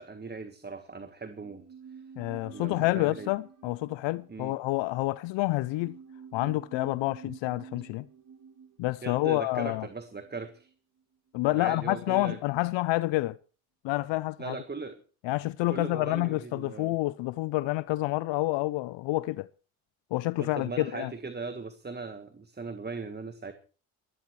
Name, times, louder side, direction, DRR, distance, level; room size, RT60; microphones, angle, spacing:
voice 1, 0.0-1.6 2.5-3.3 4.3-4.6 9.0-10.7 11.5-12.4 14.4-15.0 15.7-16.9 20.4-23.5, right 4 dB, 20° right, 1.6 m, -39 dB
sound 1, 1.4-10.7 11.0-11.1, right 6 dB, 40° right, 1.9 m, -50 dB
voice 2, 2.2-6.0 6.3-8.1 8.8-9.9 11.3-13.4 13.8-14.6 15.2-19.5 20.1-21.1, left 19 dB, 75° left, 0.6 m, -28 dB
28.5 x 11.5 x 3.2 m
supercardioid pair, 65°, 45 cm